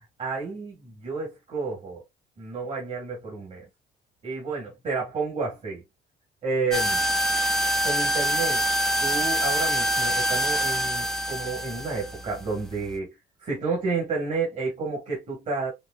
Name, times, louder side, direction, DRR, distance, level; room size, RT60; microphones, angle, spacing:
voice 1, 0.2-2.0 2.4-3.6 4.2-5.8 6.4-7.0 7.8-8.7 9.0-13.1 13.4-15.7, right 4 dB, 45° right, 2.0 m, -30 dB
sound 1, 6.7-13.0, right 1 dB, 5° left, 0.5 m, -25 dB
5.1 x 2.2 x 2.4 m
cardioid pair, 110°, 17 cm